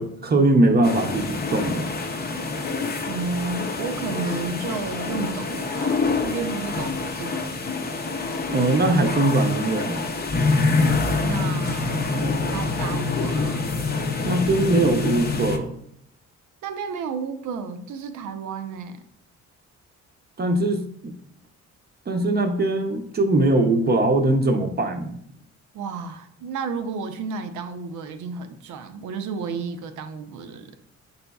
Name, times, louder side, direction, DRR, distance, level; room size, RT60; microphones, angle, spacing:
voice 1, 0.0-1.9 8.5-10.1 14.2-15.7 20.4-21.1 22.1-25.2, right 2 dB, 30° right, 5 dB, 0.6 m, -21 dB
sound 1, 0.8-15.6, left 3 dB, 30° left, 0.6 m, -26 dB
voice 2, 3.1-7.6 11.2-12.2 12.4-13.7 16.6-19.0 25.7-30.7, right 4 dB, 75° right, 8 dB, 0.6 m, -32 dB
5.5 x 4.0 x 2.3 m, 0.68 s
cardioid pair, 90°, 30 cm